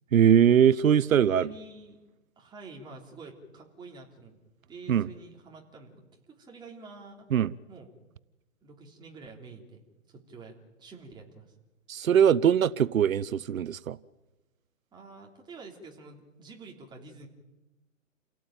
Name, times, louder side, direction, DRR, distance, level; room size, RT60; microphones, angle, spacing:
voice 1, 0.1-1.5 4.9-5.1 7.3-7.5 11.9-14.0, right 9 dB, 90° right, 0.9 m, -21 dB
voice 2, 1.3-2.0 2.4-4.3 4.7-7.3 7.7-7.9 8.6-9.8 10.1-11.5 14.9-17.3, right 3 dB, 10° right, 3.3 m, -48 dB
29.0 x 17.0 x 9.0 m
hypercardioid pair, 155°, 40 cm